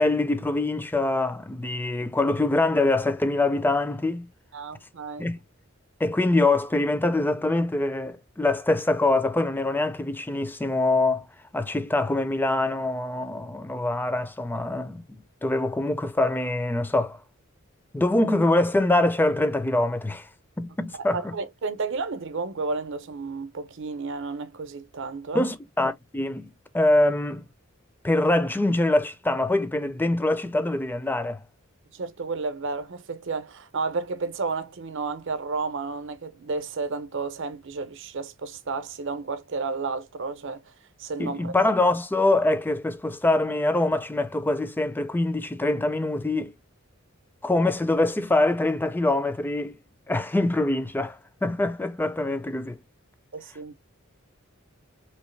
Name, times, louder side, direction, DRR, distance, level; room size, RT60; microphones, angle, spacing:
voice 1, 0.0-4.3 5.2-5.4 6.0-11.3 11.5-17.2 17.9-20.3 20.6-21.3 25.3-27.5 28.0-31.4 41.2-46.5 47.4-49.8 50.1-52.8, left 2 dB, 10° left, 0.4 m, -24 dB
voice 2, 4.5-5.3 21.1-25.4 31.9-40.6 41.0-41.7 53.3-53.8, right 4 dB, 60° right, 0.7 m, -32 dB
3.1 x 2.8 x 3.1 m
head